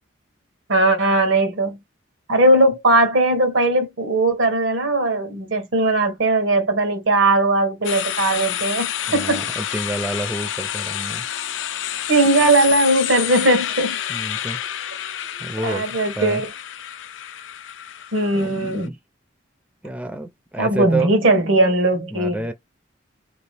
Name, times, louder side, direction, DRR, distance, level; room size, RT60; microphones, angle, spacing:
voice 1, 0.7-1.8 2.3-9.5 12.1-14.0 15.6-16.5 18.1-18.9 20.6-22.5, right 2 dB, 90° right, 1.2 m, -19 dB
sound 1, 7.8-18.9, left 11 dB, 80° left, 0.4 m, -29 dB
voice 2, 9.1-11.2 14.1-14.6 15.4-15.8 16.2-16.4 18.3-19.0 19.8-21.1 22.1-22.5, right 2 dB, 5° right, 0.4 m, -28 dB
3.0 x 2.7 x 3.2 m
head